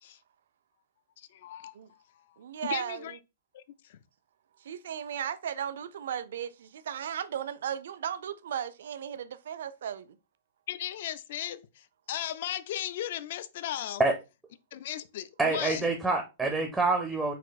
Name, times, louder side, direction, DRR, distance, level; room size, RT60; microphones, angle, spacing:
voice 1, 1.2-1.8 2.6-3.2 3.5-3.6 3.9-4.0 10.7-14.0 14.7-15.8, left 11 dB, 50° left, 0.4 m, -36 dB
voice 2, 2.4-3.2 4.6-10.1, right 9 dB, 65° right, 0.5 m, -36 dB
voice 3, 15.4-17.3, right 3 dB, 5° right, 0.5 m, -26 dB
4.3 x 2.6 x 4.0 m
supercardioid pair, 175°, 0 cm